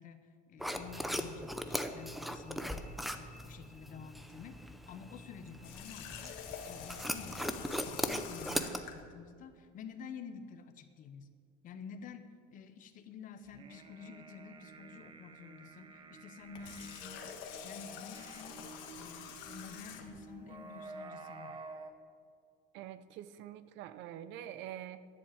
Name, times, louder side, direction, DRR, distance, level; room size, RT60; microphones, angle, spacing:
voice 1, 0.0-2.9 3.1-6.4 6.7-7.6 7.9-8.7 8.9-11.3 11.6-17.3 17.6-21.6, left 6 dB, 40° left, 9 dB, 0.9 m, -50 dB
sound 1, 0.6-8.8, equal, ahead, 0.5 m, -39 dB
Water tap faucet, 5.6-9.0 16.4-20.3, left 8 dB, 70° left, 1.4 m, -47 dB
sound 2, 13.4-21.9, right 4 dB, 25° right, 0.9 m, -51 dB
voice 2, 22.7-25.0, right 11 dB, 60° right, 14 dB, 0.7 m, -46 dB
11.0 x 7.6 x 8.5 m, 2.2 s
cardioid pair, 155°, 21 cm